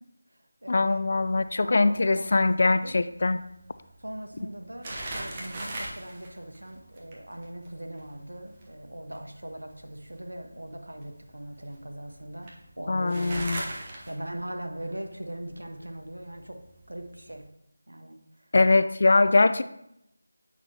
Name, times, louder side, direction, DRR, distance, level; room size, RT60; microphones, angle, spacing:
voice 1, 0.0-1.1 1.6-2.9 4.0-16.6 16.9-17.4 17.9-18.2, right 1 dB, 85° right, 4 dB, 1.1 m, -40 dB
voice 2, 0.7-3.4 12.9-13.6 18.5-19.6, left 3 dB, 50° left, 12 dB, 0.3 m, -22 dB
sound 1, 1.1-17.4, right 1 dB, 25° right, 1.0 m, -43 dB
8.5 x 5.8 x 2.9 m, 0.79 s
figure-of-eight pair, 165°, 0 cm